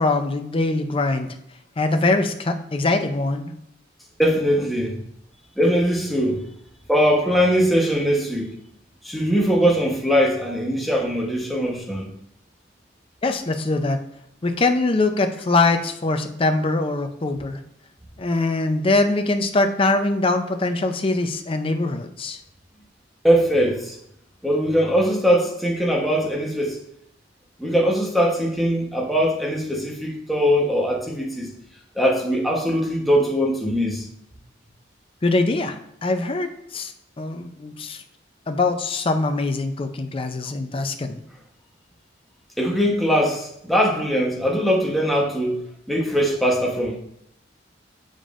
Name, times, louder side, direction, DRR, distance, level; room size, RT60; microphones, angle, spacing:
voice 1, 0.0-1.3 1.8-3.5 13.2-14.0 14.4-17.6 18.2-22.4 35.2-38.0 38.5-41.2, left 2 dB, 30° left, 0.5 m, -23 dB
voice 2, 4.2-5.0 5.6-6.4 6.9-8.5 9.0-12.1 23.2-23.9 24.4-26.8 27.6-31.5 31.9-34.1 42.6-45.6 45.9-47.0, equal, ahead, 1.0 m, -21 dB
7.2 x 5.1 x 2.5 m
head